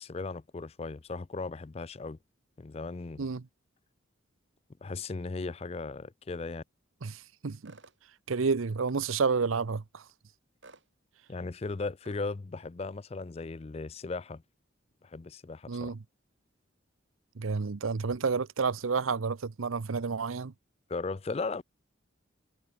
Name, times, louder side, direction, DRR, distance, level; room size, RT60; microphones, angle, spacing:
voice 1, 0.0-2.2 2.6-3.3 4.8-6.6 11.3-14.4 15.0-15.9 20.9-21.6, left 3 dB, 30° left, 0.4 m, -37 dB
voice 2, 7.0-7.7 8.3-10.0 15.7-16.0 17.4-20.5, right 5 dB, 85° right, 0.7 m, -30 dB
sound 1, 7.6-8.0 8.9-9.2 10.6-10.9 12.0-12.2, right 3 dB, 65° right, 3.1 m, -54 dB
head